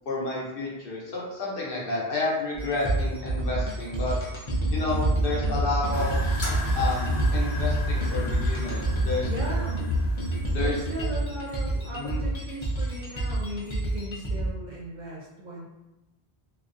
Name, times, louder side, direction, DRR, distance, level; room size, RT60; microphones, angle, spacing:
voice 1, 0.1-4.2 4.7-6.2 6.7-9.3 10.5-10.7 11.9-12.2, left 2 dB, 65° left, -4 dB, 0.8 m, -30 dB
sound 1, 2.5-14.5, right 1 dB, 40° left, 0.4 m, -27 dB
sound 2, 5.9-11.0, left 2 dB, 90° left, 1.0 m, -37 dB
voice 2, 9.3-9.9 10.6-15.7, right 1 dB, 55° right, -4 dB, 0.6 m, -37 dB
2.5 x 2.1 x 2.4 m, 0.97 s
omnidirectional pair, 1.1 m